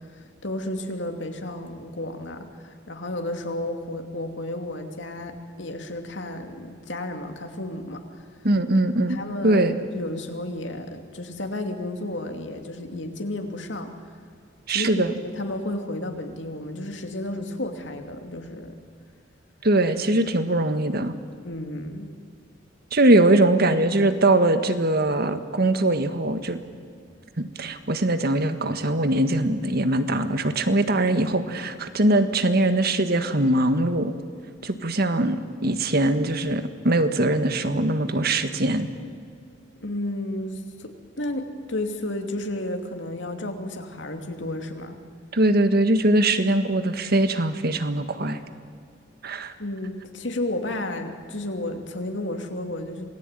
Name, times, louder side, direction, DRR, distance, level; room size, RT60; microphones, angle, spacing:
voice 1, 0.1-8.2 9.1-13.9 14.7-18.8 21.4-22.1 39.8-40.9 41.2-45.0 49.6-53.1, left 1 dB, 70° left, 5 dB, 2.8 m, -32 dB
voice 2, 8.4-9.8 14.7-15.1 19.6-21.2 22.9-26.6 27.4-34.1 34.6-35.4 35.6-38.9 45.3-48.4 49.2-49.5, right 1 dB, 55° right, 9 dB, 1.7 m, -21 dB
27.5 x 19.5 x 9.2 m, 2.3 s
head